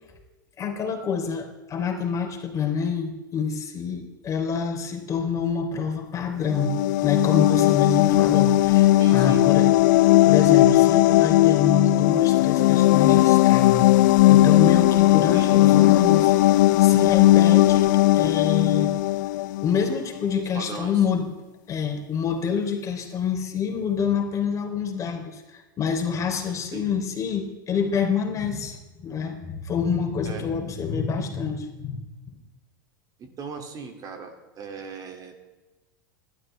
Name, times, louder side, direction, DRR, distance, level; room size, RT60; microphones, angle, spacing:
voice 1, 0.6-6.7 7.0-9.7 10.0-13.9 14.2-18.9 19.6-21.3 21.7-32.0, left 6 dB, 30° left, 3 dB, 3.3 m, -27 dB
sound 1, 6.4-20.0, left 16 dB, 65° left, 0.5 m, -17 dB
voice 2, 9.0-9.5 15.3-15.8 20.5-21.0 26.7-26.9 30.2-30.5 33.2-35.3, right 5 dB, 35° right, 5 dB, 2.6 m, -38 dB
27.5 x 12.5 x 3.4 m, 1.1 s
hypercardioid pair, 95°, 11 cm